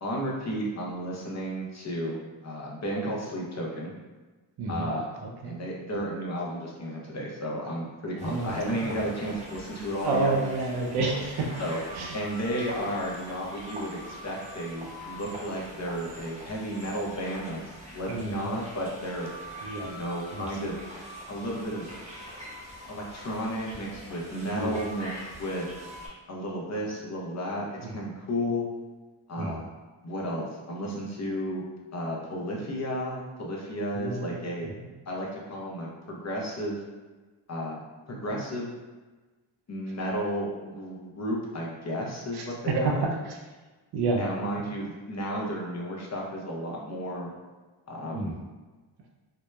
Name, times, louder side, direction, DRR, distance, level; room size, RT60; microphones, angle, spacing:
voice 1, 0.0-3.9 4.7-5.2 5.4-10.4 11.6-11.8 12.1-19.3 19.8-20.8 21.3-21.9 22.9-25.1 25.4-25.7 26.3-28.6 29.3-29.6 30.0-31.6 31.9-34.7 35.1-36.8 37.5-37.8 38.1-38.7 39.7-43.1 44.1-47.3 47.9-48.3, equal, 35° left, -2 dB, 0.7 m, -33 dB
voice 2, 4.6-4.9 5.2-5.6 8.2-9.1 10.0-11.5 11.9-12.2 18.1-18.6 19.6-19.9 20.3-20.4 24.5-24.8 27.8-28.0 29.4-29.6 33.9-34.9 42.3-43.4 43.9-44.3 48.1-48.3, right 3 dB, 55° right, 0 dB, 0.5 m, -30 dB
sound 1, 8.2-26.1, equal, 15° right, 0.8 m, -44 dB
2.8 x 2.0 x 2.2 m, 1.3 s
cardioid pair, 55°, 49 cm